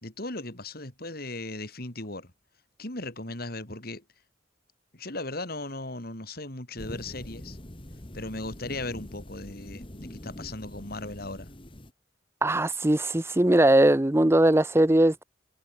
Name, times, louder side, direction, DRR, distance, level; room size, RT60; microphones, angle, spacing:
voice 1, 0.0-2.3 2.8-4.0 4.9-7.6 8.1-11.5, left 2 dB, 55° left, 4.2 m, -37 dB
sound 1, 6.8-11.9, left 1 dB, 25° left, 2.0 m, -43 dB
voice 2, 12.4-15.2, right 1 dB, 15° right, 0.7 m, -20 dB
head